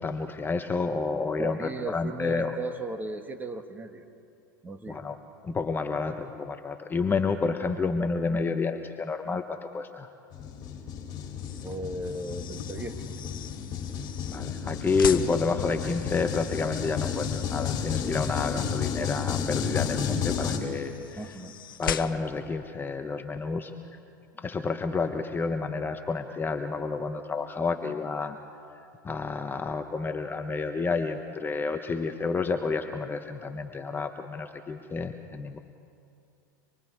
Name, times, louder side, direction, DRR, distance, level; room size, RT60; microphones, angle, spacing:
voice 1, 0.0-2.6 4.9-5.2 5.4-10.1 14.3-21.2 21.8-23.7 24.4-28.4 29.0-35.6, left 4 dB, 20° left, 7 dB, 0.9 m, -30 dB
voice 2, 1.4-4.1 4.6-5.0 11.6-13.1 21.2-21.5, right 2 dB, 15° right, 6 dB, 1.8 m, -36 dB
sound 1, 10.3-20.6, left 7 dB, 40° left, 3.4 m, -32 dB
sound 2, 11.3-22.5, left 10 dB, 85° left, 0.7 m, -41 dB
25.5 x 22.5 x 4.8 m, 2.6 s
hypercardioid pair, 100°, 11 cm